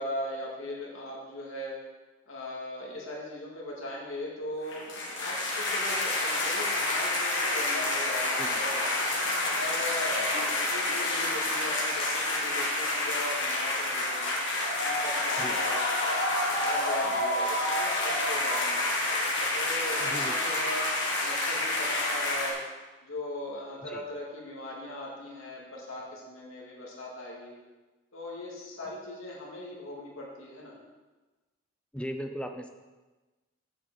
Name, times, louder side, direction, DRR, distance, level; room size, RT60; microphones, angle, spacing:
voice 1, 0.0-1.8 2.3-4.9 5.2-8.9 9.6-14.2 14.8-15.8 16.3-18.8 19.5-20.9 21.2-22.6 23.0-27.6 28.1-30.8, left 1 dB, 75° left, -3 dB, 2.2 m, -39 dB
sound 1, 4.6-22.5, left 2 dB, 55° left, 1.9 m, -28 dB
voice 2, 20.0-20.4 23.8-24.0 28.8-28.9 31.9-32.7, equal, 5° left, 5 dB, 0.5 m, -38 dB
7.3 x 5.6 x 7.3 m, 1.2 s
head